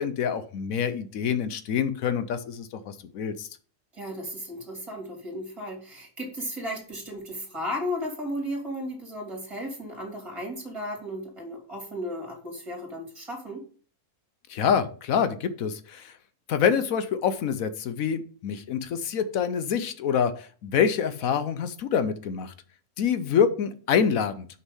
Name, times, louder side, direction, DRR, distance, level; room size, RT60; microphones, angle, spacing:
voice 1, 0.0-3.5 14.5-16.1 16.5-22.5 23.0-24.5, left 7 dB, 70° left, 12 dB, 1.1 m, -26 dB
voice 2, 3.9-13.6, equal, 20° right, 1 dB, 2.9 m, -35 dB
6.6 x 5.4 x 5.4 m, 0.41 s
omnidirectional pair, 1.6 m